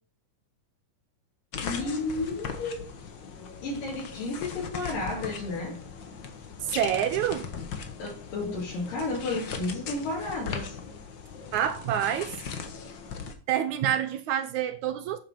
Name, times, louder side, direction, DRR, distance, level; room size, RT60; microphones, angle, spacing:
sound 1, 1.5-13.3, left 6 dB, 60° left, 1.2 m, -39 dB
voice 1, 1.6-2.9 3.6-5.8 8.0-10.8, left 2 dB, 80° left, 4.1 m, -32 dB
voice 2, 6.6-7.5 11.5-12.4 13.5-15.2, right 10 dB, 75° right, 1.9 m, -27 dB
9.0 x 7.4 x 5.8 m
omnidirectional pair, 3.8 m